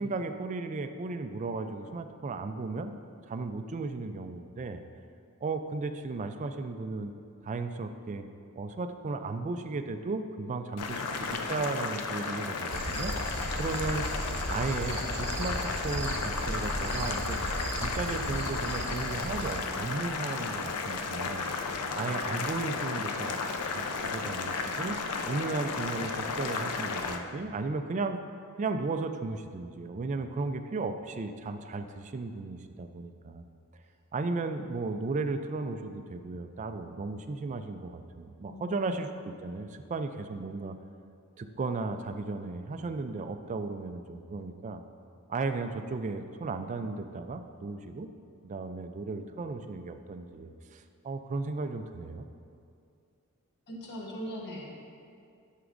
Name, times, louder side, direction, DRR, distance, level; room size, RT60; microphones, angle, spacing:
voice 1, 0.0-3.0 3.3-4.8 5.4-7.1 7.4-8.3 8.6-13.1 13.6-14.1 14.5-17.4 17.7-21.5 21.9-23.4 23.7-25.0 25.3-28.2 28.6-33.5 34.1-40.8 41.4-44.8 45.3-48.1 48.4-52.3, right 3 dB, 35° right, 7 dB, 0.3 m, -35 dB
Boiling, 10.8-27.2, left 4 dB, 85° left, 0.5 m, -34 dB
sound 1, 12.7-19.6, right 1 dB, 50° right, 0.9 m, -36 dB
voice 2, 38.5-39.0 53.7-54.7, equal, 50° left, -2 dB, 1.1 m, -41 dB
11.0 x 6.0 x 2.5 m, 2.4 s
head